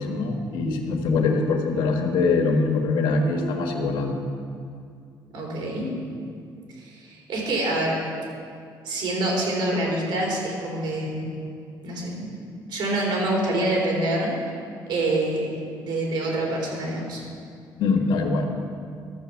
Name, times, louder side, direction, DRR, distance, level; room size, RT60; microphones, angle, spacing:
voice 1, 0.0-4.2 17.8-18.5, left 3 dB, 85° left, 3 dB, 1.4 m, -23 dB
voice 2, 5.3-5.9 6.8-8.0 8.8-11.2 11.8-12.3 12.7-14.3 14.9-15.5 15.8-17.2, right 1 dB, 70° right, -2 dB, 3.3 m, -26 dB
12.5 x 6.9 x 7.0 m, 2.3 s
cardioid pair, 135°, 8 cm